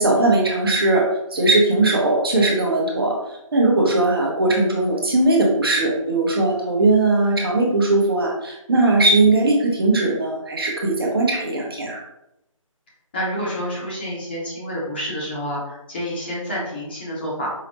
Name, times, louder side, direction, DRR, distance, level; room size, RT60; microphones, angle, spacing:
voice 1, 0.0-12.0, right 2 dB, 45° right, -1 dB, 0.8 m, -19 dB
voice 2, 13.1-17.5, equal, 20° left, -6 dB, 0.7 m, -28 dB
4.8 x 2.0 x 2.9 m, 0.85 s
figure-of-eight pair, 155°, 18 cm